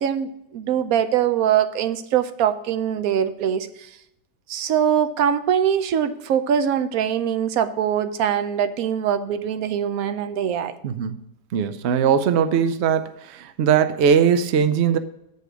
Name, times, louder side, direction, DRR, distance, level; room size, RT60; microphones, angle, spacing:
voice 1, 0.0-3.9 4.5-10.7, right 9 dB, 65° right, 11 dB, 0.9 m, -22 dB
voice 2, 10.8-11.1 11.5-15.0, right 7 dB, 90° right, 9 dB, 0.5 m, -20 dB
8.0 x 5.4 x 5.0 m, 0.82 s
omnidirectional pair, 1.8 m